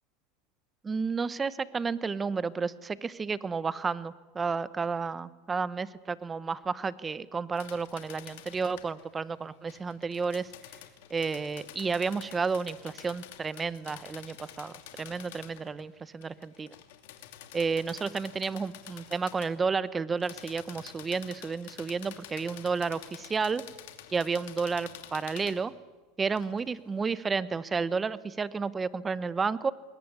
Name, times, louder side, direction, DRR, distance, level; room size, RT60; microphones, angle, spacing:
voice 1, 0.8-10.5 11.1-16.7 17.5-23.6 24.1-25.7 26.2-29.7, right 5 dB, 20° right, 17 dB, 0.9 m, -31 dB
sound 1, 7.6-9.1 9.7-15.9 16.2-19.5 20.2-25.6 26.4-26.7, left 12 dB, 75° left, 2.6 m, -49 dB
21.5 x 20.0 x 9.8 m, 1.3 s
supercardioid pair, 120°, 0 cm